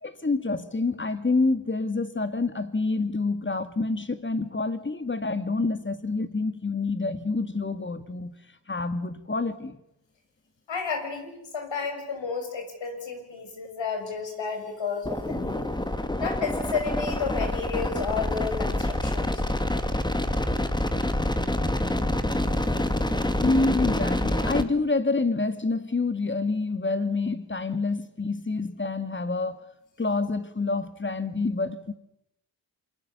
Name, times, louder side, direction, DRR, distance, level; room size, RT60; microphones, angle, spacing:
voice 1, 0.0-8.4 8.7-9.8 23.4-29.6 30.0-31.9, left 3 dB, 25° left, 2.1 m, -27 dB
voice 2, 10.7-15.7 16.2-19.4, left 5 dB, 80° left, 6.5 m, -32 dB
sound 1, 15.0-24.6, left 1 dB, 10° left, 2.0 m, -27 dB
27.5 x 23.5 x 7.0 m
cardioid pair, 75°, 44 cm